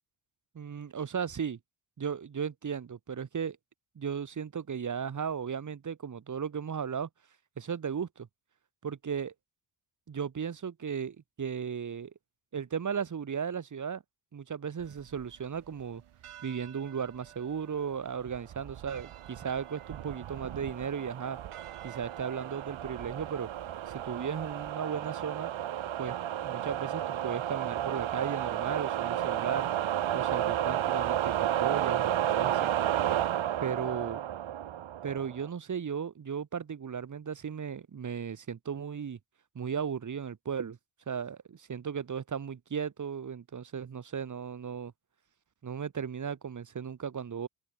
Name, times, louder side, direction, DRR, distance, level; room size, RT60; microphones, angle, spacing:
voice 1, 0.5-1.6 2.0-3.6 4.0-7.1 7.6-8.3 8.8-9.3 10.1-12.1 12.5-14.0 14.3-16.0 16.4-21.4 21.8-23.5 23.9-25.5 26.0-29.7 30.1-32.7 33.6-34.2 35.0-39.2 39.6-40.8 41.1-44.9 45.6-47.5, right 7 dB, 35° right, 2.1 m, -36 dB
sound 1, 14.8-24.7, right 11 dB, 85° right, 6.8 m, -50 dB
sound 2, 19.0-35.5, right 11 dB, 65° right, 1.9 m, -32 dB
open air
wide cardioid pair, 160°, 50 cm